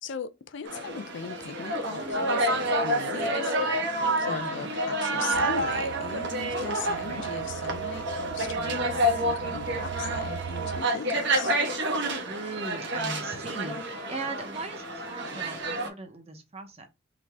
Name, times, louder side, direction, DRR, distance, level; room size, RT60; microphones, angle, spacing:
voice 1, 0.0-3.6 4.0-11.6, left 6 dB, 65° left, 0.5 m, -39 dB
sound 1, 0.7-15.9, right 1 dB, 65° right, 1.2 m, -29 dB
voice 2, 4.2-4.7 6.9-7.3 12.3-16.9, right 3 dB, 30° right, 0.9 m, -39 dB
sound 2, 5.3-10.8, right 9 dB, 85° right, 0.4 m, -36 dB
3.9 x 3.1 x 3.4 m
head